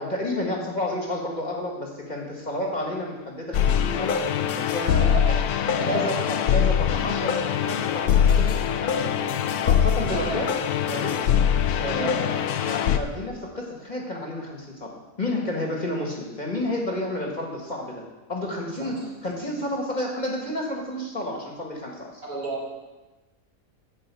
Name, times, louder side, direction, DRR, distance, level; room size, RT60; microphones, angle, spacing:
voice 1, 0.0-4.2 4.6-5.0 5.7-9.0 9.6-10.5 10.9-11.2 11.8-18.0 18.3-19.0 19.2-22.2, left 1 dB, 30° left, -1 dB, 1.8 m, -30 dB
sound 1, 3.5-13.0, left 9 dB, 85° left, 1.2 m, -23 dB
voice 2, 5.0-5.4 5.8-6.1 10.1-10.4 11.8-12.1 18.8-19.1 22.2-22.7, right 3 dB, 70° right, -5 dB, 3.6 m, -32 dB
11.5 x 5.1 x 8.3 m, 1.1 s
omnidirectional pair, 1.6 m